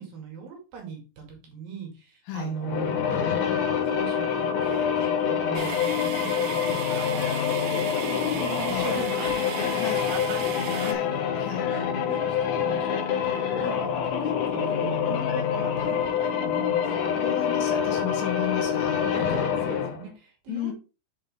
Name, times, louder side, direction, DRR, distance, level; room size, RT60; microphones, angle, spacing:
voice 1, 0.0-3.4 3.8-6.6 6.9-10.9 11.5-17.3 18.4-18.5 19.1-20.7, right 6 dB, 85° right, 4.1 m, -39 dB
sound 1, 2.6-20.1, left 8 dB, 70° left, 2.4 m, -26 dB
sound 2, 5.5-10.9, right 8 dB, 70° right, 1.9 m, -37 dB
voice 2, 9.7-10.1 10.8-11.1 11.3-11.7 17.2-19.0 20.5-20.7, left 11 dB, 85° left, 2.8 m, -33 dB
8.6 x 4.7 x 3.6 m
omnidirectional pair, 4.0 m